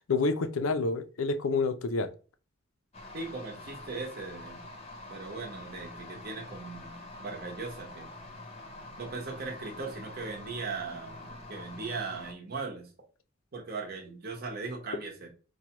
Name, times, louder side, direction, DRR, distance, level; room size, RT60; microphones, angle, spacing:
voice 1, 0.1-2.1, left 3 dB, 85° left, 0.5 m, -28 dB
sound 1, 2.9-12.3, left 2 dB, 30° left, 0.7 m, -46 dB
voice 2, 3.1-4.6 5.1-6.9 7.2-8.1 9.0-12.9 13.5-15.3, right 4 dB, 50° right, 0.9 m, -38 dB
4.5 x 2.2 x 2.9 m
head